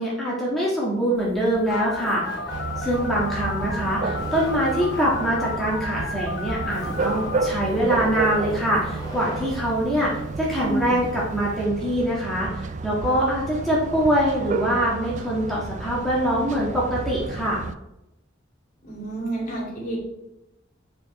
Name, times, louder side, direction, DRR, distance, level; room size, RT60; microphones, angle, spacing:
voice 1, 0.0-2.2 2.8-10.1 10.4-17.6, equal, ahead, -7 dB, 1.6 m, -24 dB
Laughter, 1.1-11.6, equal, 20° left, 2.0 m, -41 dB
Telephone, 1.7-7.5, left 3 dB, 65° left, 0.8 m, -33 dB
sound 1, 2.5-17.7, right 4 dB, 40° right, 0.4 m, -31 dB
voice 2, 10.6-11.0 18.8-20.0, right 1 dB, 45° left, -4 dB, 3.1 m, -29 dB
8.8 x 5.2 x 4.2 m, 0.90 s
head